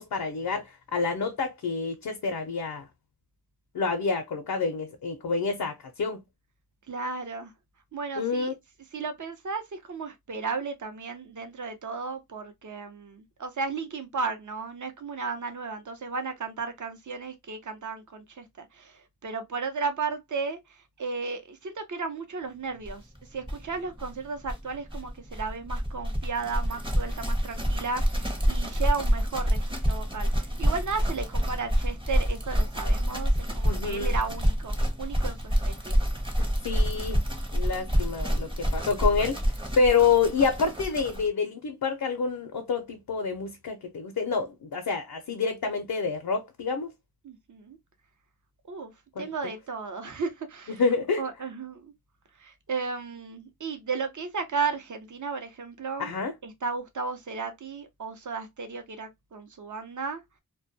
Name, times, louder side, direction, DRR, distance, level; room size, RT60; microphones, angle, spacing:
voice 1, 0.0-2.9 3.7-6.2 8.2-8.5 33.6-34.1 36.4-37.2 37.5-39.4 39.8-46.9 49.2-49.3 50.8-51.2 56.0-56.3, left 5 dB, 65° left, 0.5 m, -28 dB
voice 2, 6.9-7.5 7.9-8.6 8.9-20.6 21.0-23.0 23.3-36.0 37.8-38.0 47.2-47.8 48.7-48.9 49.2-50.8 51.2-51.9 52.4-56.1 56.4-60.2, right 4 dB, 50° right, 0.7 m, -34 dB
sound 1, 22.9-23.0 23.2-23.3 23.4-41.3, equal, 15° right, 0.7 m, -27 dB
2.2 x 2.1 x 2.6 m
wide cardioid pair, 50°, 38 cm